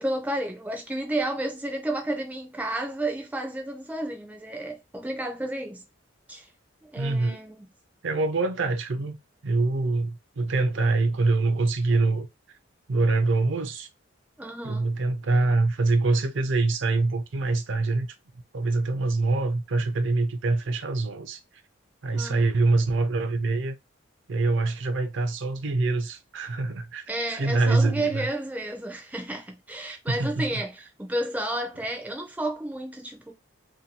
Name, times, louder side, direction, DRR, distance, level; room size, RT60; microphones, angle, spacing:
voice 1, 0.0-5.8 6.3-6.5 6.8-7.7 14.4-15.0 22.1-22.6 27.1-33.3, right 1 dB, 10° right, 0.4 m, -31 dB
voice 2, 7.0-7.4 8.0-9.2 9.4-12.3 12.9-13.9 14.6-18.1 18.5-21.4 22.0-23.8 24.3-27.0 27.3-28.3 29.9-30.6, right 3 dB, 65° right, 0.4 m, -25 dB
2.6 x 2.2 x 2.7 m
head